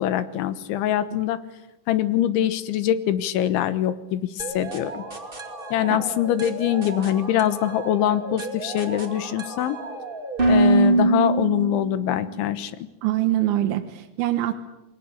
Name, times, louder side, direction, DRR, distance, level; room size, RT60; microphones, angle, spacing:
voice 1, 0.0-1.4 1.9-5.0 5.7-9.8 10.5-12.8, left 11 dB, 75° left, 13 dB, 3.4 m, -23 dB
sound 1, 4.4-12.2, right 2 dB, 20° right, 1.3 m, -26 dB
voice 2, 13.0-14.5, right 14 dB, 75° right, 5 dB, 3.4 m, -24 dB
28.5 x 22.5 x 8.4 m, 0.92 s
omnidirectional pair, 5.6 m